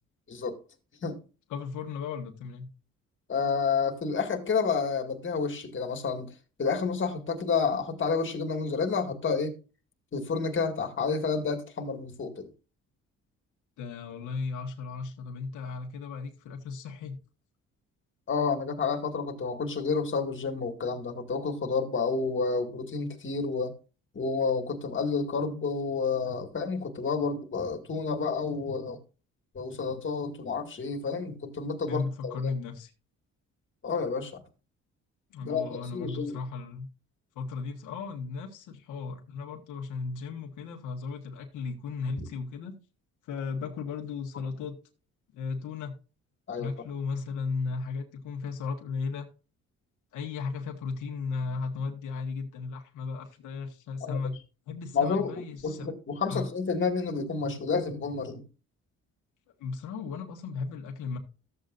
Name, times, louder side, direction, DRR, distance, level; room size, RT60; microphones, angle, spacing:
voice 1, 1.5-2.7 13.8-17.2 31.9-32.9 35.3-36.9 37.3-42.8 43.2-44.8 45.3-46.0 46.6-49.3 50.1-54.4 54.7-55.9 56.3-56.4 59.6-61.2, left 4 dB, 85° left, 1.6 m, -35 dB
voice 2, 3.3-6.3 6.6-9.6 10.1-12.5 18.3-23.7 24.1-29.0 29.5-32.5 33.8-34.4 35.4-36.4 46.5-46.7 54.0-54.2 54.9-58.4, left 5 dB, 40° left, 2.1 m, -30 dB
13.5 x 7.9 x 2.6 m
cardioid pair, 90°, 30 cm